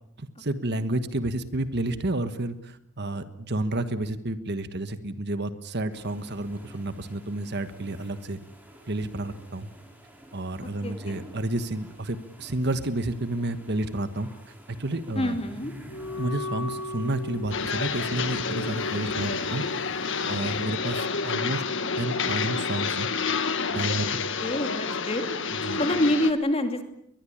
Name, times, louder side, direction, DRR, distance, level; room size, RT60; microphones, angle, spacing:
voice 1, 0.2-8.4 8.9-9.7 10.3-14.3 14.7-15.4 16.1-19.6 20.3-21.6 22.0-23.1 23.7-24.2 25.6-25.8, right 2 dB, 50° right, 11 dB, 1.4 m, -30 dB
sound 1, 5.9-20.7, right 1 dB, 5° right, 5.3 m, -49 dB
voice 2, 10.8-11.2 15.2-15.7 24.4-25.2 25.8-26.8, left 1 dB, 25° left, 6 dB, 2.7 m, -26 dB
Wind instrument woodwind instrument, 15.9-22.9, left 3 dB, 90° left, 7.7 m, -38 dB
sound 2, 17.5-26.3, left 5 dB, 55° left, 1.8 m, -29 dB
22.5 x 21.5 x 8.7 m, 0.76 s
head